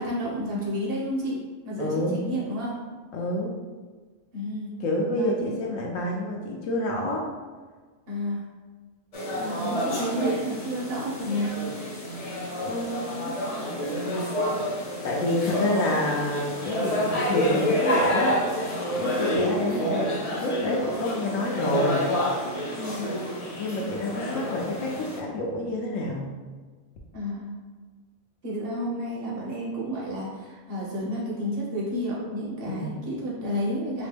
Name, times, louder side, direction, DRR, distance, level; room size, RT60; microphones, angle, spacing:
voice 1, 0.0-1.4 1.6-2.8 4.3-4.7 5.2-5.4 8.1-8.4 9.3-11.6 22.8-23.1 27.1-27.5 28.4-34.1, equal, 45° right, -5 dB, 1.2 m, -31 dB
voice 2, 1.8-2.2 3.1-3.6 4.8-7.2 12.6-13.3 15.0-18.7 19.0-22.0 23.6-26.3 32.6-32.9, left 1 dB, 75° left, -1 dB, 1.0 m, -28 dB
sound 1, 9.1-25.2, equal, 35° left, 0.6 m, -28 dB
4.9 x 2.1 x 3.3 m, 1.4 s
omnidirectional pair, 1.4 m